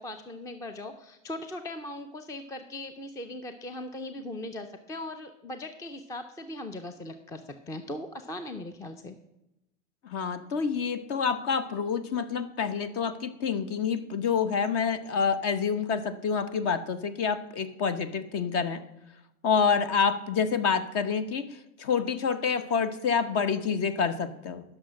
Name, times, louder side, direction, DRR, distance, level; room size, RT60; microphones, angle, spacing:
voice 1, 0.0-9.2, left 1 dB, 10° left, 9 dB, 0.5 m, -39 dB
voice 2, 10.0-18.8 19.4-21.4 21.8-24.6, left 6 dB, 40° left, 12 dB, 1.0 m, -27 dB
11.0 x 6.5 x 6.2 m, 0.90 s
supercardioid pair, 125°, 38 cm